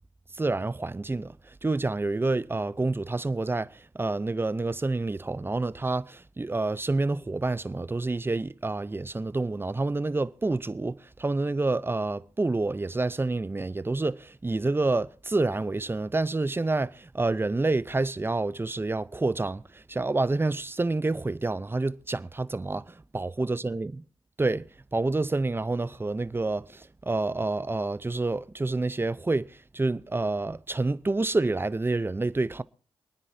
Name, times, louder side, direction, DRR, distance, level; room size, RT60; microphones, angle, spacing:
voice 1, 0.3-23.9 24.4-32.6, right 2 dB, 20° right, 0.6 m, -28 dB
28.0 x 9.9 x 2.7 m
cardioid pair, 70°, 10 cm